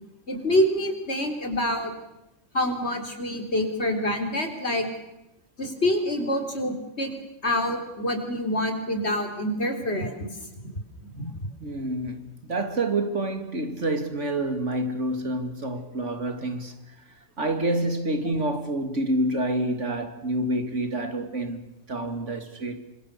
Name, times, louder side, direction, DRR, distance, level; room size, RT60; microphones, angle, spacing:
voice 1, 0.3-1.9 2.5-4.9 5.6-7.1 7.4-10.1 11.1-11.3, left 1 dB, 60° left, 4.1 m, -26 dB
voice 2, 11.6-16.9 17.4-21.6 21.9-22.8, right 1 dB, 85° right, 2.9 m, -28 dB
27.0 x 25.5 x 6.9 m
omnidirectional pair, 1.2 m